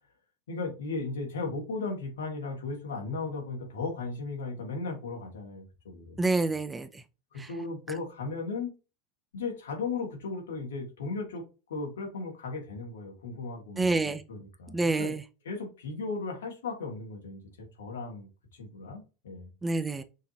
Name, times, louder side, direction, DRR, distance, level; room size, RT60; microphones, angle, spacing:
voice 1, 0.5-6.3 7.3-8.7 9.3-11.4 11.7-15.1 15.4-19.5, left 3 dB, 70° left, 2.0 m, -36 dB
voice 2, 6.2-7.0 7.4-7.5 13.8-14.2 14.7-15.2 19.6-20.0, right 3 dB, 15° right, 0.6 m, -28 dB
6.2 x 2.8 x 2.8 m
figure-of-eight pair, 80°, 0 cm